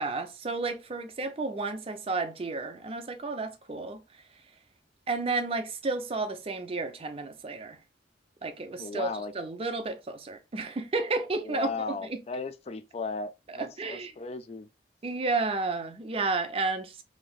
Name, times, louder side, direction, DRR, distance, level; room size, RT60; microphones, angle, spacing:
voice 1, 0.0-4.0 5.1-7.8 8.4-9.1 9.3-12.2 13.5-14.1 15.0-17.0, right 3 dB, 30° right, 0.5 m, -32 dB
voice 2, 8.7-9.3 11.4-14.7, left 4 dB, 35° left, 0.3 m, -36 dB
3.1 x 2.7 x 2.3 m
head